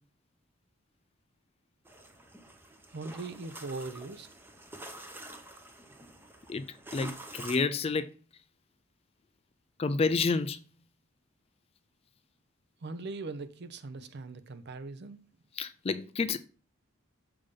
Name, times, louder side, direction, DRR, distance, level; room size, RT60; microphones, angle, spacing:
sound 1, 1.8-7.6, right 1 dB, 10° right, 0.7 m, -47 dB
voice 1, 2.9-4.3 12.8-15.2, right 3 dB, 50° right, 0.6 m, -40 dB
voice 2, 6.9-8.1 9.8-10.6 15.6-16.4, left 4 dB, 30° left, 0.3 m, -29 dB
6.8 x 3.5 x 5.2 m
head